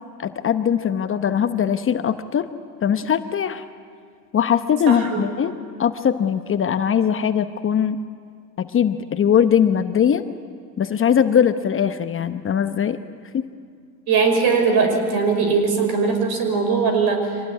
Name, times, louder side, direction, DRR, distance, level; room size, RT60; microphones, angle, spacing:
voice 1, 0.2-2.5 2.8-3.6 4.3-8.0 8.6-10.3 10.8-13.0 13.3-13.5, left 8 dB, 25° left, 10 dB, 0.9 m, -20 dB
voice 2, 4.9-5.3 14.1-17.3, right 4 dB, 50° right, 5 dB, 5.7 m, -20 dB
25.0 x 18.5 x 9.6 m, 2.1 s
hypercardioid pair, 90°, 47 cm